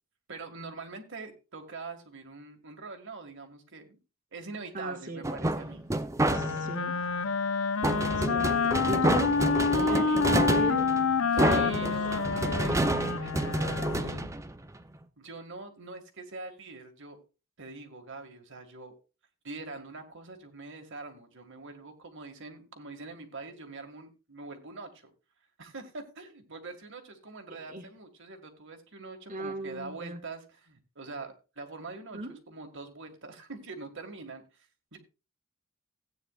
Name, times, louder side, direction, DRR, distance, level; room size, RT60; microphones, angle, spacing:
voice 1, 0.3-4.0 4.3-5.8 9.7-10.2 11.4-14.2 15.2-17.2 17.6-18.9 19.4-25.1 25.6-35.0, right 3 dB, 60° right, 4 dB, 2.0 m, -44 dB
voice 2, 4.7-5.2 6.3-7.0 8.1-8.5 8.9-9.3 9.7-10.8 11.3-11.9 27.7-27.8 29.3-30.2 32.1-32.3, right 1 dB, 40° right, 1 dB, 1.8 m, -36 dB
sound 1, 5.2-6.8 7.8-15.0, right 1 dB, 15° right, 0.6 m, -29 dB
Wind instrument woodwind instrument, 6.2-14.3, left 5 dB, 70° left, 0.8 m, -28 dB
16.5 x 9.1 x 2.4 m, 0.31 s
head